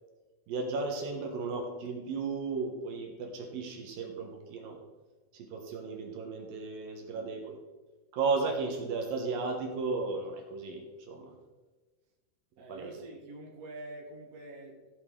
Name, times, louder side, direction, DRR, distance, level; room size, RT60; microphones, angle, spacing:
voice 1, 0.5-4.8 5.3-7.6 8.1-11.3 12.7-13.0, right 4 dB, 70° right, 2 dB, 2.8 m, -34 dB
voice 2, 12.6-14.8, right 2 dB, 35° right, -1 dB, 1.4 m, -45 dB
15.0 x 7.4 x 3.7 m, 1.2 s
omnidirectional pair, 4.6 m